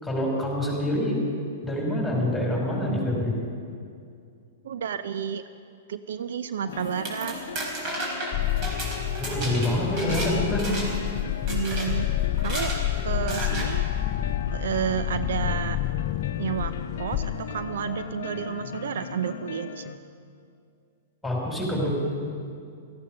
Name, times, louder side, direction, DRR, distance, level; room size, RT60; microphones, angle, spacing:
voice 1, 0.0-1.2 1.6-3.4 9.2-10.9 21.2-21.9, left 1 dB, ahead, -3 dB, 5.1 m, -26 dB
voice 2, 4.6-5.4 5.9-7.4 11.5-12.1 12.4-12.7 13.0-13.9 14.5-15.8 16.4-16.7 17.0-19.9, right 8 dB, 65° right, 11 dB, 0.5 m, -31 dB
sound 1, 6.6-20.0, left 6 dB, 60° left, 0.8 m, -37 dB
sound 2, 6.8-10.3 10.6-11.1 11.5-11.9 12.4-12.8 13.3-13.7, right 2 dB, 35° right, 4.5 m, -33 dB
sound 3, 8.3-17.7, left 13 dB, 35° left, 0.4 m, -29 dB
17.0 x 14.0 x 5.5 m, 2.4 s
figure-of-eight pair, 105°, 0 cm